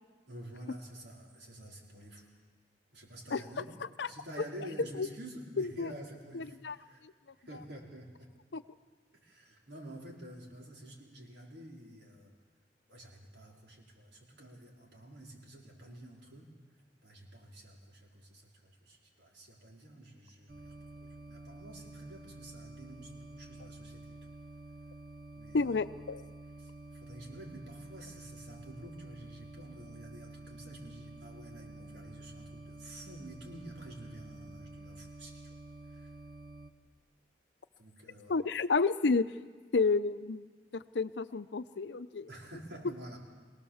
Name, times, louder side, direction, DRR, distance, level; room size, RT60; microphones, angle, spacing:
voice 1, 0.3-2.3 2.9-3.8 4.1-7.0 7.4-8.3 9.2-12.3 12.9-16.5 17.0-24.2 25.4-25.9 26.6-35.5 35.9-36.1 37.8-38.4 42.3-43.2, right 1 dB, 75° right, -2 dB, 4.4 m, -49 dB
voice 2, 5.6-5.9 6.3-6.8 8.5-8.6 25.5-26.2 38.3-39.3 39.7-40.5 40.7-42.3, left 4 dB, 75° left, 13 dB, 0.6 m, -30 dB
sound 1, 20.5-36.7, right 2 dB, 55° right, 1.0 m, -49 dB
23.0 x 18.0 x 7.2 m, 1.5 s
head